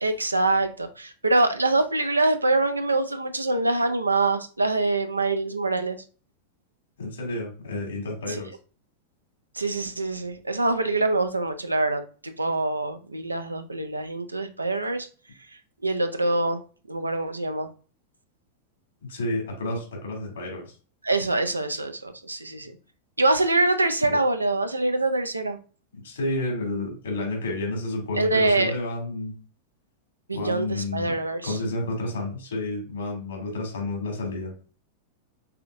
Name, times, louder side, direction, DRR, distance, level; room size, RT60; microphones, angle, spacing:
voice 1, 0.0-6.0 8.3-8.4 9.6-15.1 15.8-16.6 16.9-17.7 21.0-22.7 23.2-25.6 28.2-28.7 30.3-31.6, right 2 dB, 80° right, 0.5 m, -24 dB
voice 2, 7.0-8.5 19.1-20.7 24.1-24.2 26.0-29.3 30.3-31.2 31.4-34.5, left 2 dB, 70° left, 2.5 m, -30 dB
5.7 x 3.7 x 2.5 m
figure-of-eight pair, 90°, 0 cm